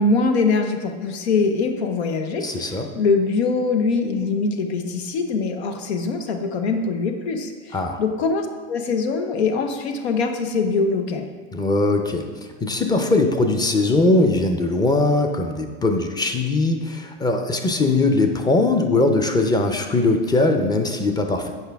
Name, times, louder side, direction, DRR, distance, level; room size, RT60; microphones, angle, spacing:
voice 1, 0.0-11.3, left 4 dB, 85° left, 6 dB, 0.8 m, -23 dB
voice 2, 2.4-2.9 7.7-8.0 11.5-12.3 12.6-21.5, left 2 dB, 15° left, 5 dB, 0.6 m, -20 dB
8.0 x 4.9 x 3.5 m, 1.5 s
supercardioid pair, 120°, 31 cm